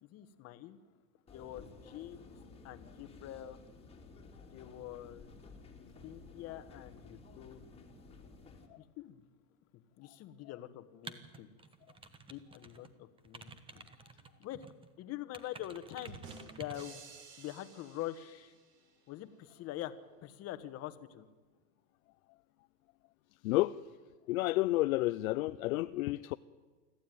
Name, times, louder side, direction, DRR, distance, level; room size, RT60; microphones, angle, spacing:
voice 1, 0.0-0.8 1.3-2.3 2.6-3.6 4.5-5.3 6.0-7.6 8.8-9.2 10.0-11.6 12.3-13.9 14.4-14.6 15.0-16.2 16.6-17.0 17.4-18.5 19.1-19.9 20.2-21.3, left 14 dB, 30° left, 1.3 m, -45 dB
sound 1, 1.3-8.7, left 3 dB, 10° left, 2.5 m, -54 dB
sound 2, 11.0-12.9 13.2-14.9 15.3-16.9, right 4 dB, 10° right, 1.0 m, -51 dB
sound 3, 16.1-18.9, right 4 dB, 50° right, 6.6 m, -53 dB
voice 2, 23.4-23.8 24.3-26.4, left 18 dB, 60° left, 0.6 m, -30 dB
25.0 x 14.5 x 9.3 m
supercardioid pair, 140°, 49 cm